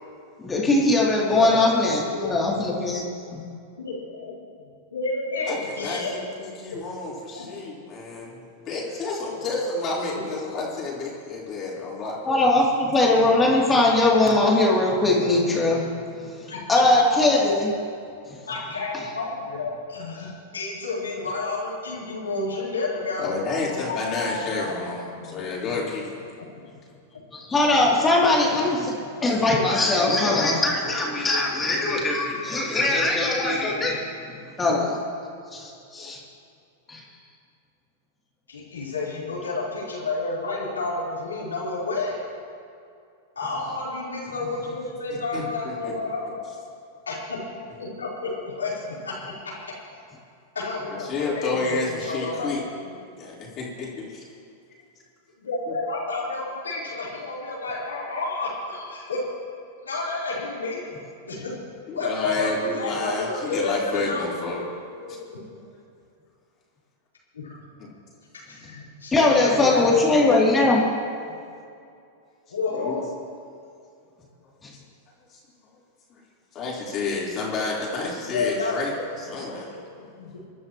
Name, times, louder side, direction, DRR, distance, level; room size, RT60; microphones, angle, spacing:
voice 1, 0.4-3.0 12.2-15.9 16.7-17.7 27.5-34.0 34.3-35.0 35.5-36.2 36.9-37.0 69.1-70.8, left 2 dB, 20° left, -3 dB, 3.1 m, -20 dB
voice 2, 1.3-1.6 2.1-2.4 2.8-2.9 3.8-6.1 6.7-6.8 7.3-7.4 16.5-17.0 18.5-24.7 25.1-25.8 26.4-26.6 31.3-31.5 38.5-42.2 43.4-46.4 47.1-47.4 47.8-49.6 50.5-53.0 55.4-59.2 59.8-60.9 61.2-61.5 61.9-65.4 67.3-67.6 68.3-70.5 72.5-73.1 78.3-79.0 79.4-79.5 80.0-80.5, left 3 dB, 90° left, -6 dB, 4.2 m, -31 dB
voice 3, 5.5-8.4 8.7-12.3 22.2-22.3 23.2-26.3 45.3-45.9 51.1-52.6 53.2-54.2 61.9-64.6 65.1-65.2 67.8-67.9 72.7-73.0 75.3-75.4 76.1-76.2 76.5-78.9 79.2-79.8, left 3 dB, 35° left, -5 dB, 4.1 m, -30 dB
26.5 x 12.0 x 3.1 m, 2.4 s
hypercardioid pair, 100°, 0 cm